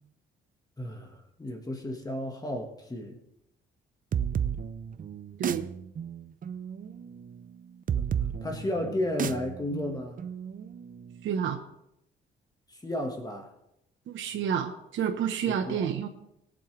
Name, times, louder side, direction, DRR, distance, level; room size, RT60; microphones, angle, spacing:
voice 1, 0.8-3.2 8.4-10.2 12.7-13.5 15.5-15.9, left 1 dB, 20° left, 3 dB, 1.7 m, -33 dB
sound 1, 4.1-11.5, right 8 dB, 45° right, 0.7 m, -34 dB
voice 2, 5.4-5.7 11.2-11.6 14.1-16.1, right 8 dB, 75° right, 3 dB, 1.2 m, -29 dB
22.5 x 7.8 x 3.4 m, 0.82 s
cardioid pair, 90°, 20 cm